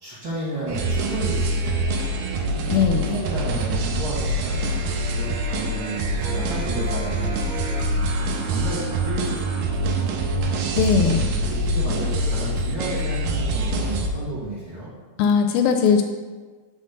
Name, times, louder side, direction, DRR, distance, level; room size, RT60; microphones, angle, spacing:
voice 1, 0.0-2.1 3.0-4.6 5.1-7.5 8.2-10.1 11.3-14.9, right 2 dB, 50° right, -8 dB, 1.5 m, -32 dB
Robot Farm, 0.7-14.1, right 1 dB, 80° right, 2.6 m, -25 dB
voice 2, 2.7-3.2 10.8-11.2 15.2-16.0, left 6 dB, 80° left, 5 dB, 2.2 m, -19 dB
Harp, 4.3-10.5, right 3 dB, 65° right, 2.7 m, -39 dB
6.4 x 4.1 x 6.4 m, 1.4 s
omnidirectional pair, 4.3 m